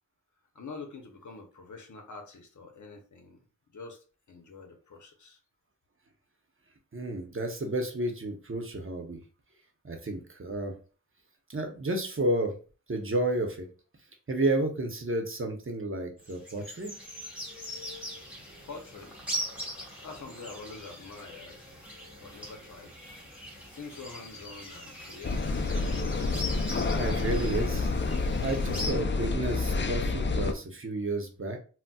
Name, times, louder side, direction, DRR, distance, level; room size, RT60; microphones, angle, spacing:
voice 1, 0.5-3.4 3.7-5.4 18.6-19.2 20.0-21.7 22.2-22.9 23.6-25.5, left 4 dB, 65° left, 4 dB, 0.8 m, -45 dB
voice 2, 6.9-9.2 9.8-10.7 11.5-12.5 12.9-13.7 14.3-16.9 26.7-31.6, right 1 dB, 40° right, 4 dB, 0.8 m, -31 dB
sound 1, 16.2-28.9, equal, 5° right, 1.6 m, -41 dB
sound 2, 25.2-30.5, left 3 dB, 35° left, 0.4 m, -29 dB
4.0 x 2.1 x 2.3 m, 0.37 s
cardioid pair, 45°, 32 cm